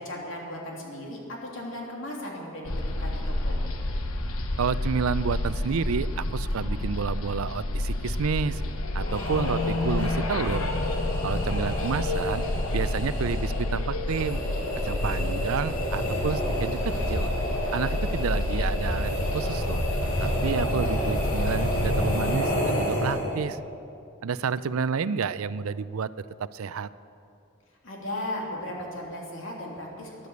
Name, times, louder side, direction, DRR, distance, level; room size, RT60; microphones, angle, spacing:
voice 1, 0.0-3.6 27.8-30.3, left 1 dB, 65° left, -2 dB, 3.0 m, -36 dB
sound 1, 2.6-22.4, left 1 dB, 85° left, 1.1 m, -29 dB
voice 2, 4.6-8.6 8.9-10.7 11.2-12.4 12.7-14.4 14.8-17.3 17.7-19.8 20.2-23.6 24.2-26.1 26.4-26.9, right 6 dB, 85° right, 16 dB, 0.5 m, -30 dB
sound 2, 9.0-23.5, equal, 40° left, 4.4 m, -30 dB
13.5 x 11.0 x 8.1 m, 2.6 s
head